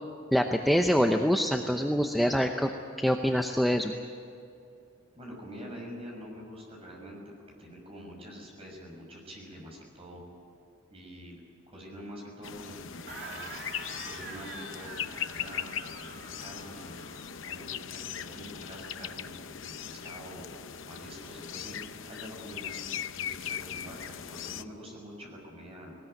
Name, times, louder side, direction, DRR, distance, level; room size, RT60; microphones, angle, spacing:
voice 1, 0.3-2.7 3.0-3.9, equal, ahead, 4 dB, 0.7 m, -25 dB
voice 2, 5.1-7.2 7.6-10.2 10.9-16.9 17.4-20.5 20.9-26.0, equal, 30° right, -1 dB, 6.2 m, -46 dB
sound 1, 12.4-24.6, left 9 dB, 75° left, 0.7 m, -39 dB
sound 2, 13.1-17.5, right 3 dB, 55° right, 2.4 m, -45 dB
20.0 x 19.5 x 9.2 m, 2.5 s
head